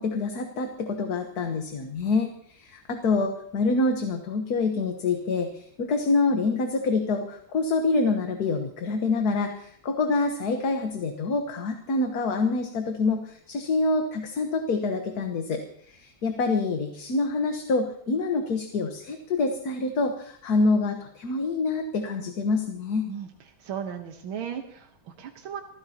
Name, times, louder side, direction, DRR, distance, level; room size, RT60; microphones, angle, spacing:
voice 1, 0.0-23.1, left 3 dB, 55° left, 4 dB, 1.7 m, -26 dB
voice 2, 23.1-25.6, right 8 dB, 90° right, 4 dB, 2.0 m, -36 dB
27.0 x 15.0 x 2.9 m, 0.62 s
omnidirectional pair, 2.2 m